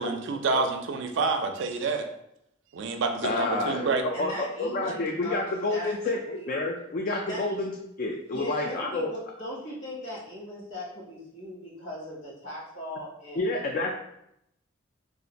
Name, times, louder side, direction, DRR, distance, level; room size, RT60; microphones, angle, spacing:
voice 1, 0.0-2.1 2.7-4.0, right 4 dB, 65° right, 5 dB, 0.4 m, -28 dB
voice 2, 3.2-7.7 8.0-9.1 13.4-13.9, left 2 dB, 45° left, 1 dB, 0.3 m, -29 dB
voice 3, 4.1-6.5 7.3-7.4 8.3-13.6, left 1 dB, 65° left, -4 dB, 1.2 m, -39 dB
2.5 x 2.5 x 3.9 m, 0.79 s
head